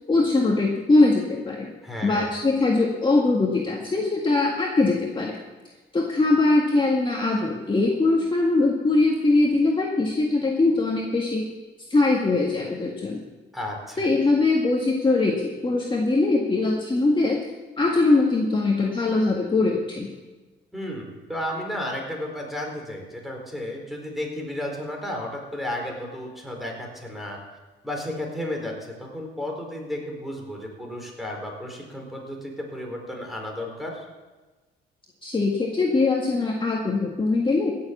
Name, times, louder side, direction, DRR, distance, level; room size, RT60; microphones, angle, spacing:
voice 1, 0.1-1.7 2.0-5.4 5.9-11.5 11.9-13.2 14.0-17.5 17.8-20.1 35.2-37.7, left 3 dB, 25° left, -1 dB, 1.8 m, -22 dB
voice 2, 1.8-2.3 13.5-14.1 20.7-27.4 27.8-34.1, left 1 dB, ahead, 0 dB, 4.4 m, -33 dB
16.5 x 7.2 x 7.3 m, 1.3 s
cardioid pair, 90°, 20 cm